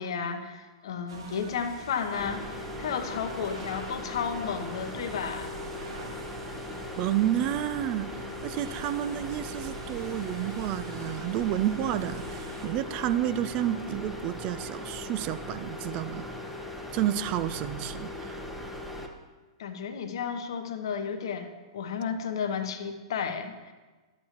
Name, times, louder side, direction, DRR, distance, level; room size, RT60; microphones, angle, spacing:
voice 1, 0.0-5.5 17.7-17.8 19.6-23.7, left 6 dB, 65° left, 7 dB, 0.8 m, -33 dB
sound 1, 1.1-12.7, right 2 dB, 70° right, 1.3 m, -45 dB
sound 2, 2.1-19.1, left 1 dB, 5° right, 0.9 m, -39 dB
voice 2, 7.0-16.3 16.9-18.4, right 12 dB, 40° right, 13 dB, 0.4 m, -30 dB
11.5 x 8.3 x 3.0 m, 1.3 s
figure-of-eight pair, 110°, 3 cm